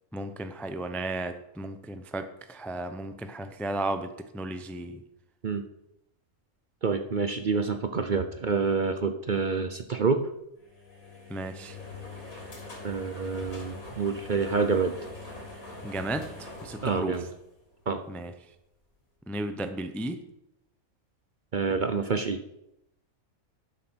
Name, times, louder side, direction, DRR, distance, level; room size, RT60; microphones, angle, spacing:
voice 1, 0.1-5.0 11.3-11.8 15.8-17.2 18.1-18.3 19.3-20.2, right 2 dB, ahead, 8 dB, 0.4 m, -34 dB
voice 2, 6.8-10.2 12.8-14.9 16.8-17.2 17.9-18.0 21.5-22.4, right 4 dB, 45° right, 8 dB, 0.7 m, -27 dB
sound 1, 10.6-17.9, left 3 dB, 80° left, 3.9 m, -43 dB
11.5 x 7.1 x 6.2 m, 0.84 s
omnidirectional pair, 1.4 m